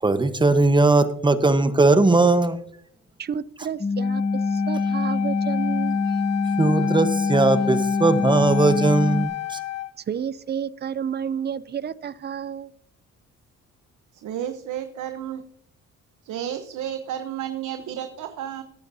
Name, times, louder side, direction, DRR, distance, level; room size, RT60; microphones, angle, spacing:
voice 1, 0.0-2.6 6.6-9.6, right 2 dB, 15° right, 10 dB, 1.1 m, -19 dB
voice 2, 3.2-6.0 10.1-12.7, right 8 dB, 35° right, 19 dB, 0.5 m, -31 dB
sound 1, 3.8-9.3, left 4 dB, 25° left, 1.5 m, -24 dB
Wind instrument woodwind instrument, 4.0-9.9, left 15 dB, 60° left, 0.8 m, -31 dB
voice 3, 14.2-15.4 16.2-18.6, right 10 dB, 80° right, 8 dB, 1.1 m, -32 dB
19.0 x 8.9 x 2.8 m, 0.68 s
cardioid pair, 90°, 30 cm